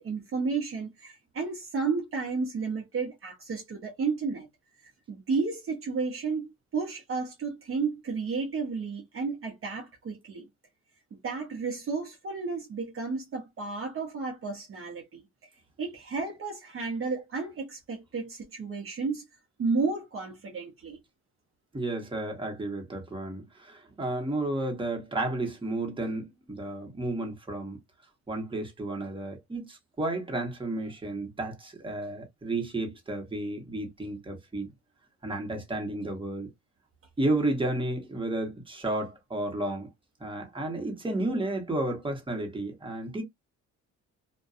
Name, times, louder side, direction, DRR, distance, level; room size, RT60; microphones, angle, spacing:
voice 1, 0.0-4.5 5.1-10.5 11.2-15.2 15.8-19.2 19.6-21.0, right 4 dB, 45° right, 0.7 m, -32 dB
voice 2, 21.7-27.8 28.3-34.7 35.2-36.5 37.2-39.9 40.2-43.2, right 2 dB, 15° right, 1.1 m, -32 dB
2.5 x 2.2 x 2.4 m
cardioid pair, 90°, 30 cm